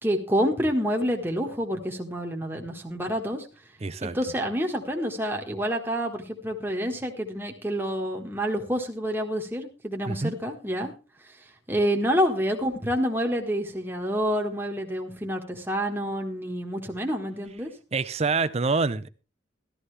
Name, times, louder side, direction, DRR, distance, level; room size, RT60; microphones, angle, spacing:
voice 1, 0.0-3.5 4.0-10.9 11.7-17.7, equal, 10° right, 1.5 m, -28 dB
voice 2, 3.8-4.2 10.1-10.3 17.9-19.1, right 4 dB, 35° right, 0.6 m, -26 dB
13.0 x 12.5 x 3.3 m
head